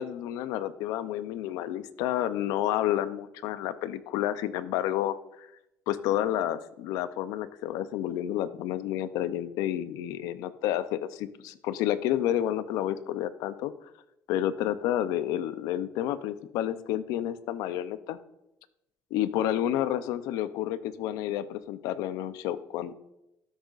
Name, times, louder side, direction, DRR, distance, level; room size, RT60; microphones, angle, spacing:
voice 1, 0.0-5.5 5.9-13.7 14.3-18.2 19.1-22.9, left 12 dB, 90° left, 14 dB, 0.5 m, -30 dB
13.0 x 6.5 x 2.4 m, 0.86 s
cardioid pair, 130°, 6 cm